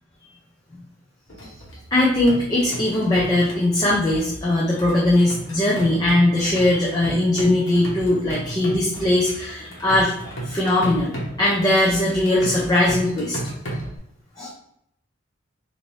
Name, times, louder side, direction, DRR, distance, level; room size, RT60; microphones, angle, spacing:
sound 1, 1.3-14.0, right 1 dB, 70° left, 1.2 m, -35 dB
voice 1, 1.9-13.4 14.4-14.5, left 1 dB, 20° left, -5 dB, 0.7 m, -20 dB
4.1 x 2.7 x 3.2 m, 0.74 s
head